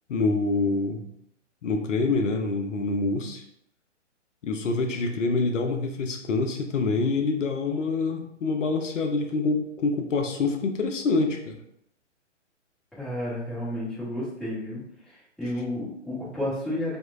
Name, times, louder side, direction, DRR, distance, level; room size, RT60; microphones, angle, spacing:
voice 1, 0.1-1.0 1.6-3.4 4.4-11.6, left 3 dB, 80° left, 4 dB, 0.5 m, -26 dB
voice 2, 12.9-14.8 15.1-17.0, left 1 dB, ahead, -12 dB, 0.9 m, -31 dB
2.9 x 2.1 x 2.3 m, 0.73 s
figure-of-eight pair, 130°, 37 cm